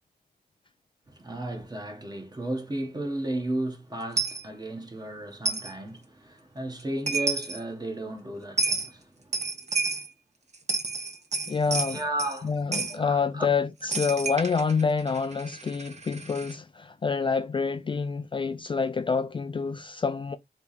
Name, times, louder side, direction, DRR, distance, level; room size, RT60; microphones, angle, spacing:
voice 1, 1.1-9.4 11.9-12.5 12.9-13.5, right 1 dB, 25° right, 1.3 m, -34 dB
Coin (dropping), 4.2-4.4 5.4-5.7 6.8-6.9 7.1-7.6 8.6-8.9 9.3-10.1 10.5-12.4 12.7-13.0 13.9-16.5, right 3 dB, 40° right, 0.9 m, -30 dB
voice 2, 11.5-12.0 12.4-20.4, left 5 dB, 30° left, 0.4 m, -27 dB
3.4 x 3.1 x 4.1 m
cardioid pair, 80°, 17 cm